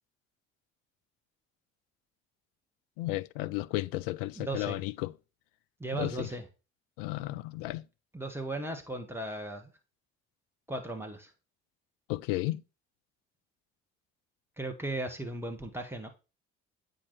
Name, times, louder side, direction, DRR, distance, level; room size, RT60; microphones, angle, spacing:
voice 1, 3.0-5.1 5.9-6.3 7.0-7.8 12.1-12.6, left 18 dB, 60° left, 0.5 m, -33 dB
voice 2, 4.4-4.8 5.8-6.4 8.1-9.7 10.7-11.3 14.6-16.1, right 2 dB, 5° right, 1.8 m, -36 dB
8.3 x 5.2 x 4.1 m
figure-of-eight pair, 50°, 37 cm